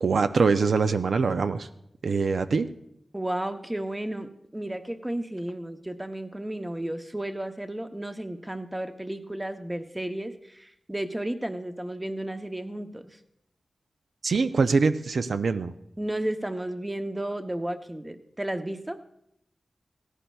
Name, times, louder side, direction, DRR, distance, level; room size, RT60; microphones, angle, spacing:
voice 1, 0.0-1.7 2.0-2.7 14.2-15.7, right 4 dB, 80° right, 10 dB, 0.4 m, -23 dB
voice 2, 3.1-13.2 16.0-19.0, right 1 dB, 15° right, 7 dB, 0.7 m, -33 dB
17.5 x 14.5 x 2.3 m, 0.77 s
wide cardioid pair, 110°, 0 cm